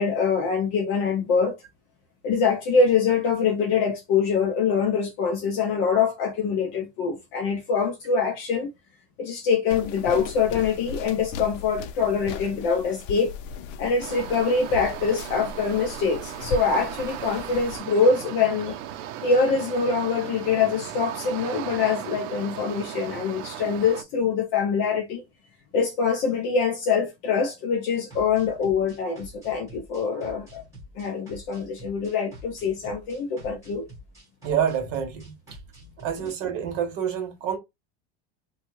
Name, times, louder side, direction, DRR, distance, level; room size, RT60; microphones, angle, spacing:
voice 1, 0.0-1.5 2.2-8.7 9.2-13.3 13.8-18.8 19.2-25.2 25.7-30.6 31.0-33.8, left 5 dB, 30° left, 0.4 m, -24 dB
sound 1, 9.7-17.8, left 7 dB, 75° left, 0.6 m, -38 dB
sound 2, 14.0-24.0, right 11 dB, 75° right, 0.6 m, -37 dB
sound 3, 28.1-36.4, equal, 10° right, 1.7 m, -47 dB
voice 2, 34.4-35.3 36.0-37.6, right 8 dB, 35° right, 0.9 m, -27 dB
3.5 x 2.3 x 3.0 m
supercardioid pair, 175°, 39 cm